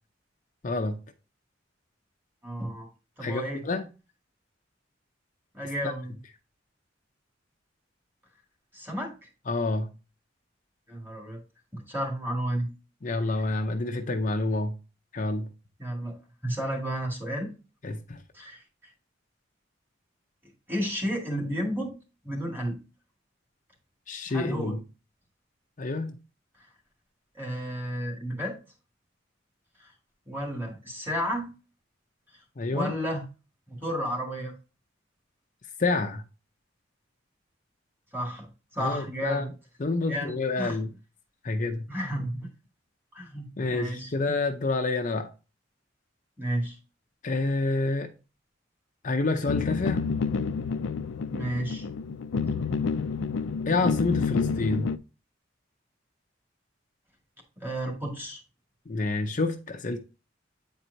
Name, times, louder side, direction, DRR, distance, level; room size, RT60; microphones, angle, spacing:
voice 1, 0.6-1.0 3.2-3.9 9.5-9.9 13.0-14.8 15.1-15.5 17.8-18.2 24.1-24.8 25.8-26.1 32.6-32.9 35.8-36.2 38.8-39.5 39.8-40.9 41.4-41.9 43.6-45.3 47.2-48.1 49.0-50.0 53.7-54.9 58.9-60.0, left 3 dB, 45° left, 0.6 m, -28 dB
voice 2, 2.4-2.9 3.2-3.6 5.5-6.1 8.7-9.1 10.9-11.4 11.7-12.7 13.4-13.5 15.8-16.1 16.4-17.5 18.3-18.6 20.7-21.9 22.2-22.8 24.3-24.8 27.4-28.6 30.3-31.5 32.7-33.2 33.7-34.5 38.1-38.5 38.7-39.5 40.1-40.8 41.9-42.5 43.1-44.4 46.4-46.8 51.3-51.9 57.6-58.4, equal, 10° right, 1.9 m, -32 dB
sound 1, 49.5-55.0, left 5 dB, 85° left, 0.4 m, -29 dB
8.7 x 4.4 x 2.7 m
head